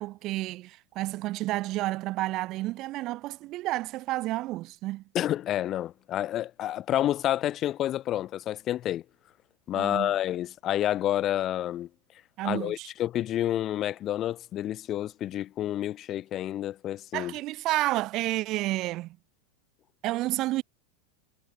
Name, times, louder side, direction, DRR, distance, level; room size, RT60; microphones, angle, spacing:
voice 1, 0.0-5.0 9.7-10.1 12.4-12.9 17.1-19.2 20.0-20.6, right 17 dB, 45° right, 0.4 m, -30 dB
voice 2, 5.1-9.0 9.7-11.9 12.4-17.3, left 12 dB, 40° left, 0.5 m, -29 dB
hypercardioid pair, 105°, 0 cm